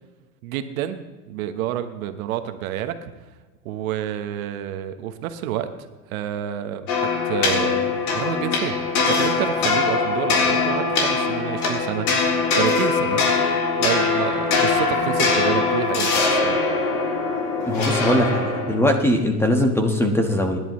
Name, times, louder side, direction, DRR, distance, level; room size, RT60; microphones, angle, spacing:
voice 1, 0.4-3.1 3.6-5.7 6.1-8.8 9.1-13.3 13.8-16.6, right 10 dB, 65° right, 8 dB, 1.2 m, -29 dB
sound 1, 6.9-18.9, left 4 dB, 75° left, 3.8 m, -22 dB
voice 2, 17.7-20.6, left 1 dB, 5° left, 4 dB, 1.4 m, -20 dB
25.0 x 11.0 x 3.1 m, 1.3 s
supercardioid pair, 130°, 45 cm